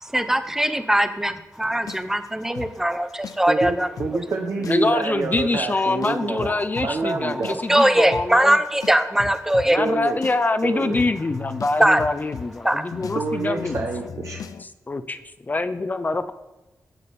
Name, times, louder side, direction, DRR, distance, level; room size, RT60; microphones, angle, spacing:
voice 1, 0.0-3.9 7.7-9.8 11.8-12.0 12.6-13.0, right 1 dB, 5° right, 10 dB, 0.9 m, -20 dB
sound 1, 1.9-4.1 4.5-5.0 5.3-5.5 6.0-14.6, left 7 dB, 85° left, 0.5 m, -36 dB
voice 2, 3.5-6.5 6.8-7.6 9.8-10.2 10.6-11.0 13.1-14.4, right 3 dB, 60° right, 1 dB, 1.2 m, -27 dB
voice 3, 4.6-8.6 9.7-13.8 14.6-16.3, left 3 dB, 30° left, 11 dB, 0.6 m, -25 dB
18.0 x 7.3 x 4.2 m, 1.1 s
wide cardioid pair, 105°, 6 cm